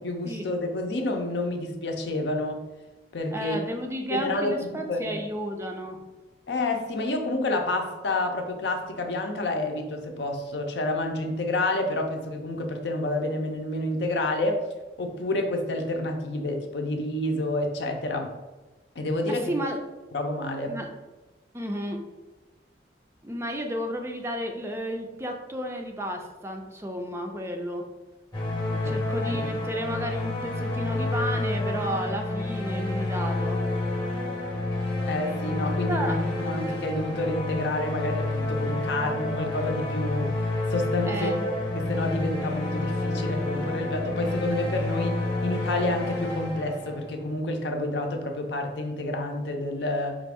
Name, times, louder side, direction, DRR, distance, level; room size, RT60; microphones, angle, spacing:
voice 1, 0.0-2.6 3.1-3.6 4.1-5.2 6.5-14.6 15.0-18.3 19.0-19.5 20.1-20.8 28.8-28.9 29.2-29.6 35.1-40.4 40.7-41.4 41.8-50.2, left 2 dB, 70° left, 3 dB, 0.6 m, -29 dB
voice 2, 3.3-6.0 19.3-19.8 20.7-20.9 21.5-22.1 23.2-27.8 28.7-33.6 35.9-36.2 41.1-41.5, equal, 15° right, 3 dB, 0.4 m, -32 dB
sound 1, 28.3-47.2, left 2 dB, 25° left, 0.8 m, -29 dB
5.1 x 2.4 x 3.5 m, 1.1 s
head